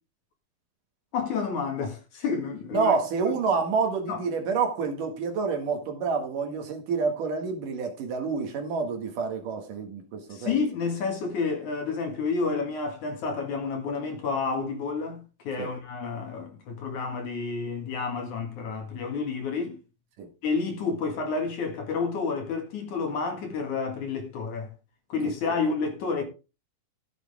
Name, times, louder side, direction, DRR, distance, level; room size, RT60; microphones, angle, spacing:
voice 1, 1.1-2.9 4.1-4.2 10.3-15.2 15.4-19.8 20.4-24.7 25.1-26.2, left 4 dB, 60° left, 3.0 m, -30 dB
voice 2, 2.7-10.6 15.6-15.7 20.2-20.3 25.2-25.6, right 5 dB, 65° right, 3.1 m, -28 dB
14.5 x 7.4 x 3.5 m
omnidirectional pair, 4.3 m